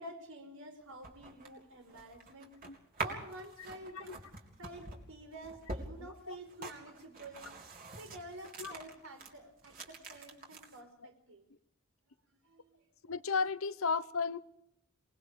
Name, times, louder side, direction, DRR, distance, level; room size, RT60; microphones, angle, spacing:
voice 1, 0.0-2.6 3.0-4.2 4.6-7.5 8.0-11.4 12.4-12.8, right 1 dB, 75° right, 4.6 m, -50 dB
sound 1, 0.8-9.3 9.6-10.8, right 3 dB, 45° right, 3.9 m, -45 dB
voice 2, 6.3-6.7 8.6-8.7 13.1-14.4, left 5 dB, 75° left, 0.9 m, -34 dB
27.5 x 20.0 x 5.3 m
head